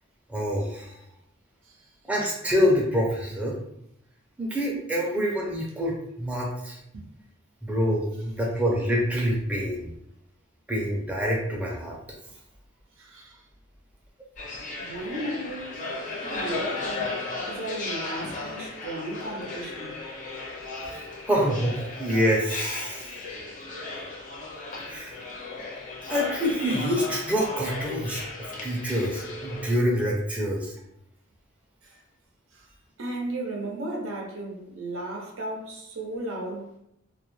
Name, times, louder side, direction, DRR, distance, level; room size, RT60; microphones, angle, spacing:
voice 1, 0.3-0.9 2.0-3.6 4.4-6.8 7.6-9.9 10.7-12.0 20.8-23.1 24.8-25.2 26.1-28.2 28.6-30.7, equal, 5° right, 0.5 m, -26 dB
voice 2, 13.0-13.4 14.8-15.9 16.2-19.9 31.8-32.0 32.5-32.7 33.0-36.7, right 1 dB, 85° right, 0.6 m, -35 dB
sound 1, 14.4-29.8, left 3 dB, 40° left, 0.5 m, -35 dB
2.3 x 2.1 x 3.0 m
head